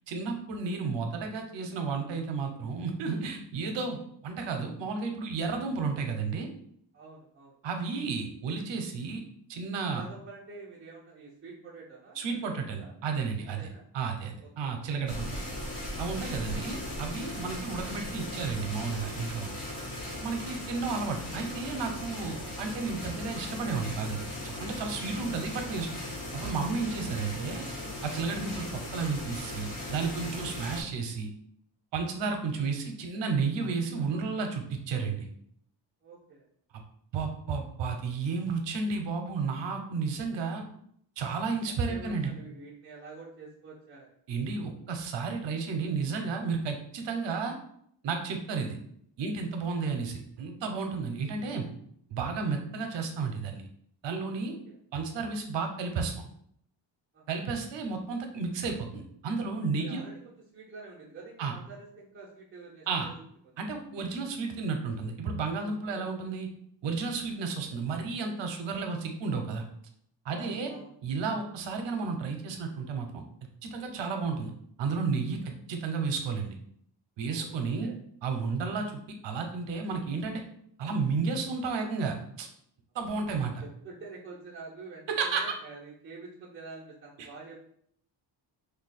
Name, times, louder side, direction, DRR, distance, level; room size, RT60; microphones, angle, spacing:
voice 1, 0.1-6.5 7.6-9.2 9.5-10.0 12.2-13.7 13.9-15.4 16.0-19.5 20.2-25.9 26.3-27.7 28.0-31.3 31.9-35.3 36.7-36.8 37.1-40.6 41.2-42.3 44.3-47.6 48.0-48.8 49.2-51.6 52.1-53.7 54.0-54.6 54.9-56.2 57.3-60.0 61.4-61.5 62.9-63.1 63.6-66.5 66.8-69.6 70.2-70.7 71.0-73.2 73.6-74.5 74.8-76.6 77.2-77.9 78.2-78.9 79.2-80.4 80.8-82.5 82.9-83.5 85.1-85.4 87.2-87.3, right 4 dB, 65° right, 4 dB, 0.7 m, -32 dB
voice 2, 6.9-7.6 9.8-12.9 13.6-13.8 14.4-14.7 20.3-20.7 25.0-25.1 36.0-36.5 41.9-44.1 49.7-49.8 54.5-54.8 57.1-57.4 59.8-63.2 63.4-63.5 65.9-66.0 70.3-70.9 77.3-77.9 83.6-87.6, right 3 dB, 25° right, -7 dB, 0.5 m, -48 dB
sound 1, 15.1-30.8, left 1 dB, 60° left, 1.0 m, -38 dB
2.7 x 2.3 x 4.0 m, 0.67 s
cardioid pair, 165°, 47 cm